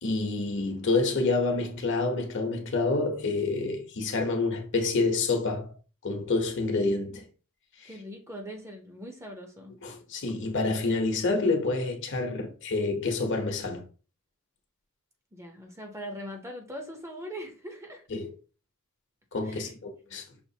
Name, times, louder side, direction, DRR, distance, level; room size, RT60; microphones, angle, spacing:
voice 1, 0.0-5.7 6.0-7.3 7.8-7.9 9.8-13.9 18.1-18.3 19.3-20.2, left 3 dB, 55° left, 0.9 m, -28 dB
voice 2, 7.8-9.7 15.3-18.0 19.4-19.7, equal, 15° right, 0.7 m, -41 dB
5.9 x 2.5 x 2.8 m
head